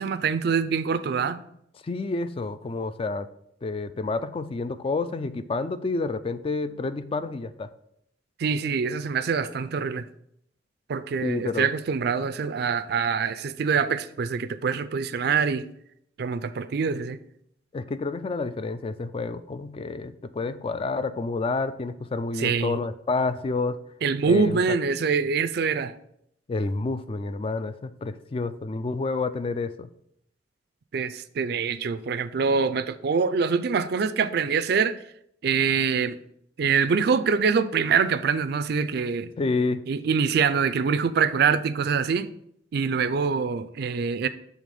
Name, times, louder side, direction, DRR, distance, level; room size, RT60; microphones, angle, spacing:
voice 1, 0.0-1.4 8.4-10.1 10.9-15.7 16.2-17.2 22.4-22.8 24.0-25.9 30.9-35.0 35.4-36.2 36.6-39.3 39.9-42.3 42.7-44.3, right 5 dB, 60° right, 12 dB, 0.4 m, -24 dB
voice 2, 1.8-3.3 3.6-7.7 11.2-11.7 17.7-23.8 24.2-24.6 26.5-29.9 39.4-39.8, left 3 dB, 30° left, 12 dB, 0.3 m, -29 dB
6.5 x 3.4 x 5.2 m, 0.73 s
head